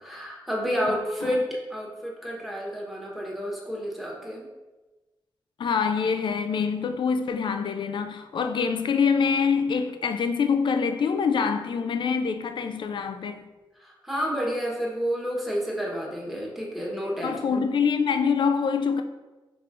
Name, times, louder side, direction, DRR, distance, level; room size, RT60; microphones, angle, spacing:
voice 1, 0.0-4.5 13.8-17.6, equal, ahead, 1.1 m, -30 dB
voice 2, 0.9-1.4 5.6-13.4 17.2-19.0, left 6 dB, 60° left, 0.3 m, -25 dB
4.8 x 3.4 x 2.5 m
cardioid pair, 80°, 9 cm